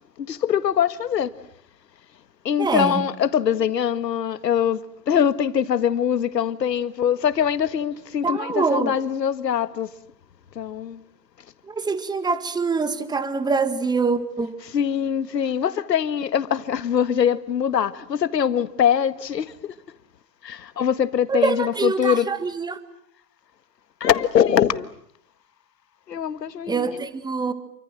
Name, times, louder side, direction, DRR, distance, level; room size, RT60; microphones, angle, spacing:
voice 1, 0.2-1.3 2.5-4.8 5.1-9.9 10.6-11.0 14.6-19.7 20.4-22.3 24.0-24.9 26.1-27.0, left 8 dB, 80° left, 1.9 m, -23 dB
voice 2, 2.6-3.0 8.2-9.0 11.7-14.6 21.3-22.8 26.7-27.5, right 4 dB, 10° right, 1.8 m, -24 dB
28.5 x 25.0 x 7.7 m
hypercardioid pair, 125°, 49 cm